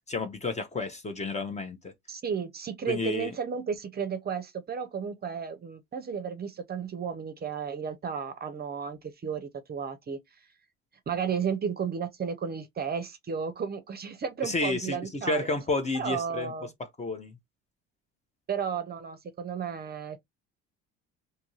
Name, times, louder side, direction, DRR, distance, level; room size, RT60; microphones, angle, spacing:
voice 1, 0.1-1.9 2.9-3.3 14.4-16.5 16.8-17.4, left 3 dB, 20° left, 0.6 m, -31 dB
voice 2, 2.1-10.2 11.1-15.4 15.9-16.7 18.5-20.2, right 7 dB, 30° right, 0.6 m, -33 dB
2.7 x 2.5 x 3.0 m
cardioid pair, 100°, 31 cm